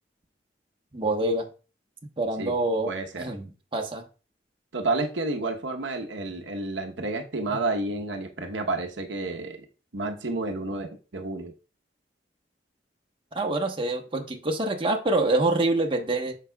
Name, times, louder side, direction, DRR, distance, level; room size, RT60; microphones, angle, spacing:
voice 1, 0.9-1.5 2.2-4.0 7.5-7.6 13.3-16.4, right 2 dB, 30° right, 3 dB, 1.1 m, -26 dB
voice 2, 2.9-3.3 4.7-9.7 9.9-11.5, right 2 dB, 90° right, 4 dB, 1.0 m, -30 dB
12.0 x 5.0 x 2.3 m, 0.33 s
head